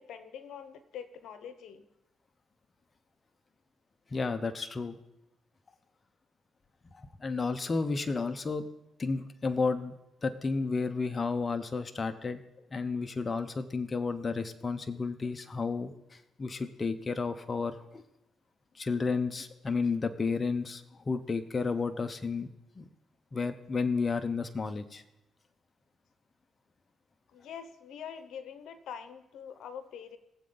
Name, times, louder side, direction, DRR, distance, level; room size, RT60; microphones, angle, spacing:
voice 1, 0.0-1.9 27.3-30.2, left 7 dB, 75° left, 11 dB, 1.0 m, -44 dB
voice 2, 4.1-5.0 6.9-8.6 9.0-9.9 10.2-12.4 12.7-18.0 18.7-22.5 22.8-22.9 23.3-25.0, left 4 dB, 30° left, 8 dB, 0.9 m, -32 dB
22.0 x 7.7 x 4.0 m, 0.88 s
cardioid pair, 90°, 0 cm